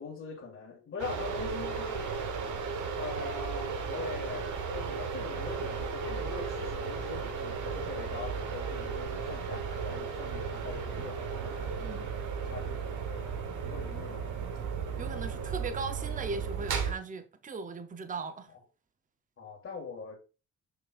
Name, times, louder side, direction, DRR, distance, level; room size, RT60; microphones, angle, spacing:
voice 1, 0.0-2.3 3.0-12.0 12.5-14.3 15.1-15.2 19.4-20.1, left 4 dB, 45° left, 2.1 m, -42 dB
sound 1, 1.0-16.9, right 5 dB, 80° right, 1.2 m, -35 dB
voice 2, 15.0-18.5, right 4 dB, 25° right, 0.7 m, -38 dB
6.7 x 5.9 x 2.5 m
cardioid pair, 90°, 30 cm